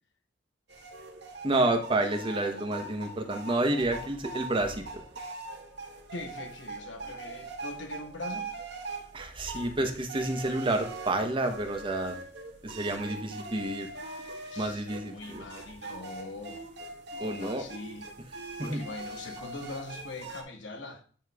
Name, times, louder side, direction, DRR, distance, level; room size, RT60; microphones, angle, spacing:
sound 1, 0.7-20.4, right 3 dB, 65° right, 1.3 m, -42 dB
voice 1, 1.4-5.0 9.1-12.2 12.6-13.9 14.6-15.4 17.2-17.6 18.6-18.8, right 2 dB, 30° right, 0.9 m, -29 dB
voice 2, 6.1-8.5 14.5-16.7 17.2-18.1 18.4-21.0, left 2 dB, 90° left, 1.2 m, -42 dB
8.9 x 3.1 x 4.7 m
head